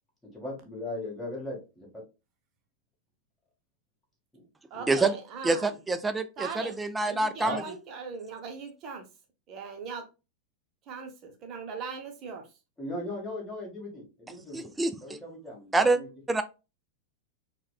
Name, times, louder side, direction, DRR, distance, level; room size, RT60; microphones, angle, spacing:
voice 1, 0.3-2.0 4.3-4.4 4.7-5.0 7.4-7.6 12.8-14.7 15.0-16.1, left 1 dB, 10° left, 1.7 m, -38 dB
voice 2, 4.7-5.7 6.4-6.7 7.1-9.1 9.5-10.0 10.9-12.5, right 5 dB, 35° right, 0.8 m, -39 dB
voice 3, 5.4-7.6 14.5-14.9 15.7-16.0 16.3-16.4, right 3 dB, 10° right, 0.4 m, -26 dB
4.6 x 2.2 x 2.3 m
figure-of-eight pair, 90°, 0 cm